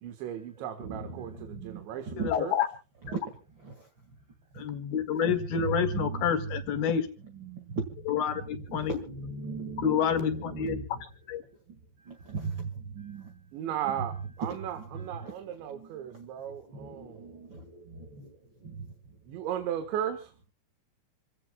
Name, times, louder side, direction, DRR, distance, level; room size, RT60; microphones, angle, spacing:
voice 1, 0.0-2.5 13.5-14.1 14.4-17.3 19.3-20.3, right 10 dB, 90° right, 7 dB, 3.8 m, -36 dB
voice 2, 0.6-2.3 3.1-3.3 3.6-3.8 4.5-4.6 5.2-6.3 7.3-8.0 8.4-10.8 12.0-13.4 13.8-14.0 14.5-15.4 15.7-16.3 16.7-18.4 18.6-18.9, right 4 dB, 45° right, 4 dB, 1.6 m, -38 dB
voice 3, 2.2-2.7 4.6-7.0 8.1-8.9 9.8-10.8 11.3-11.4, left 8 dB, 65° left, 8 dB, 3.5 m, -28 dB
28.0 x 16.0 x 2.3 m, 0.36 s
omnidirectional pair, 5.0 m